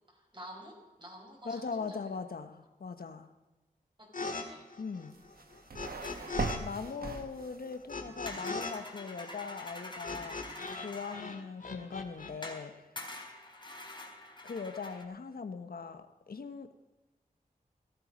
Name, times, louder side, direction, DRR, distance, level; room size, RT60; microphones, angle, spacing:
voice 1, 0.1-2.2 4.0-4.7, equal, 30° right, 0 dB, 5.2 m, -50 dB
voice 2, 1.4-3.3 4.8-5.2 6.6-12.9 14.4-16.7, left 5 dB, 80° left, 9 dB, 1.1 m, -40 dB
sound 1, 4.1-4.4 4.7-6.6 6.8-10.9 11.1-12.3, left 3 dB, 60° left, 2.0 m, -40 dB
sound 2, 5.1-7.8, right 3 dB, 85° right, 1.5 m, -39 dB
sound 3, 6.0-6.6 8.3-11.3 12.4-12.7 13.0-15.0, left 2 dB, 30° left, 3.3 m, -46 dB
16.5 x 13.0 x 5.2 m, 1.1 s
wide cardioid pair, 85°, 15 cm